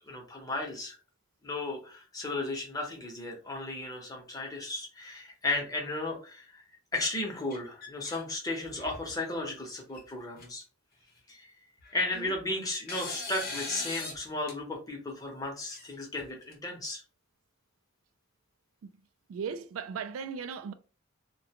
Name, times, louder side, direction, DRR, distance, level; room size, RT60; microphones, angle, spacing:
voice 1, 0.0-1.0 1.4-6.6 6.9-10.6 11.3-11.5 11.9-17.0, left 2 dB, 20° left, 0.8 m, -35 dB
sound 1, 7.5-8.2 8.6-9.1 9.9-10.0 10.4-10.5 11.8-12.4 12.9-14.2 14.5-14.6 15.7-16.5, left 3 dB, 45° left, 0.8 m, -40 dB
voice 2, 19.3-20.7, right 6 dB, 90° right, 0.3 m, -37 dB
2.4 x 2.2 x 2.8 m
head